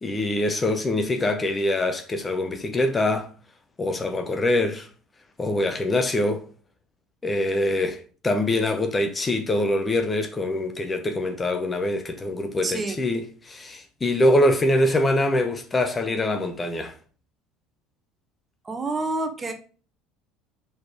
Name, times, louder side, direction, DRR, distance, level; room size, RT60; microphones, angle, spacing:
voice 1, 0.0-3.3 3.8-4.9 5.4-6.4 7.2-16.9, left 1 dB, 20° left, 0.8 m, -24 dB
voice 2, 12.6-13.0 18.6-19.5, right 3 dB, 25° right, 1.1 m, -28 dB
5.2 x 3.9 x 5.0 m
figure-of-eight pair, 65°, 0 cm